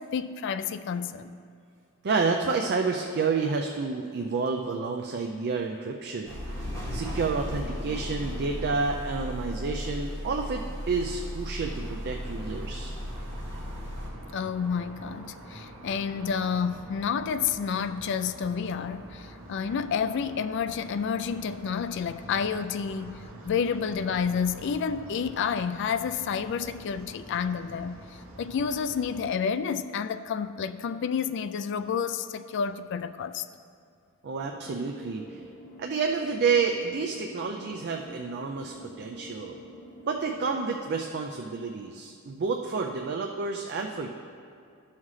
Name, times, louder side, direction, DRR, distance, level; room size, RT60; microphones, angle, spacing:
voice 1, 0.0-1.4 14.3-28.0 28.4-33.5, left 6 dB, 60° left, 0.3 m, -30 dB
voice 2, 2.0-6.3 6.9-12.9 34.2-35.3 35.8-39.6 40.1-44.1, right 4 dB, 50° right, 0.4 m, -29 dB
sound 1, 6.3-14.1, equal, 15° left, 2.0 m, -35 dB
sound 2, 11.6-29.2, right 1 dB, 75° right, 1.3 m, -46 dB
sound 3, 34.3-40.9, equal, 85° left, 1.1 m, -47 dB
13.5 x 5.7 x 3.2 m
head